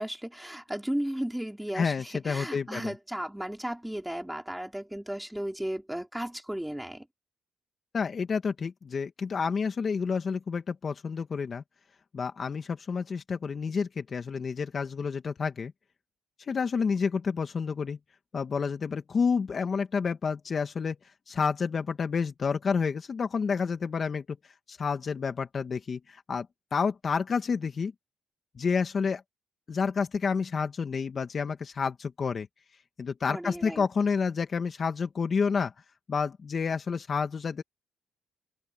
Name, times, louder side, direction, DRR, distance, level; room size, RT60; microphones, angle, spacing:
voice 1, 0.0-7.1 33.3-33.9, right 1 dB, 5° right, 4.3 m, -35 dB
voice 2, 1.7-2.9 7.9-11.6 12.1-15.7 16.5-18.0 18.3-24.3 24.7-26.5 26.7-27.9 28.6-29.2 29.7-32.5 33.0-35.7 36.1-37.6, left 5 dB, 45° left, 1.8 m, -29 dB
open air
cardioid pair, 90°, 0 cm